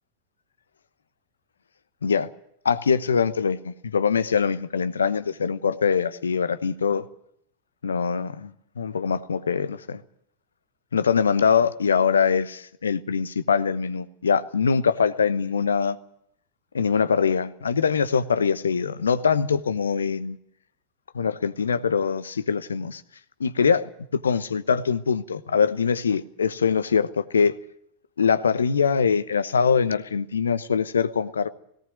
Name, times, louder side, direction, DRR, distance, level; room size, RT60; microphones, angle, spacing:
voice 1, 2.6-7.0 7.8-10.0 10.9-16.0 16.7-20.4 21.1-23.0 23.4-27.6 28.2-31.5, left 6 dB, 70° left, 13 dB, 1.0 m, -23 dB
18.0 x 17.5 x 9.0 m, 0.71 s
figure-of-eight pair, 90°, 0 cm